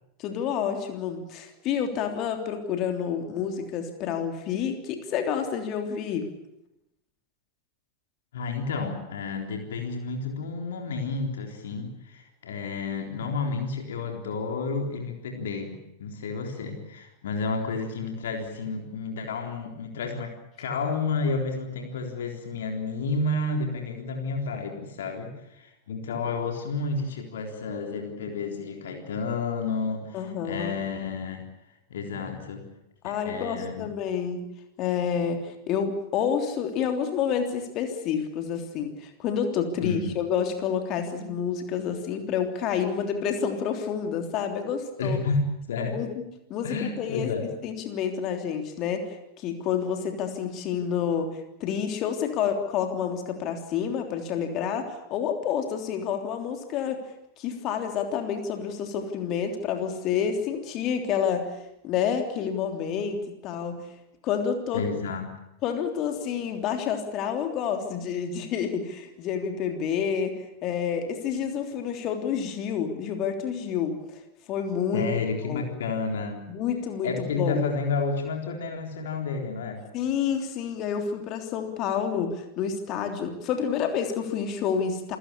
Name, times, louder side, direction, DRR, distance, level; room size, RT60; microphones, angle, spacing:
voice 1, 0.2-6.3 30.1-30.7 33.0-34.4 34.8-45.2 45.9-46.1 46.5-47.3 47.6-57.0 57.4-61.5 61.8-63.8 64.2-64.8 65.6-74.2 74.5-75.1 75.5-75.7 76.5-77.6 79.9-85.2, left 7 dB, 35° left, 5 dB, 3.3 m, -29 dB
voice 2, 8.3-31.5 31.9-32.6 33.0-33.9 39.8-40.1 45.0-46.0 46.6-47.5 64.7-65.3 74.9-76.4 77.0-79.8, left 4 dB, 60° left, 3 dB, 3.8 m, -31 dB
28.0 x 17.5 x 8.5 m, 0.86 s
figure-of-eight pair, 90°, 0 cm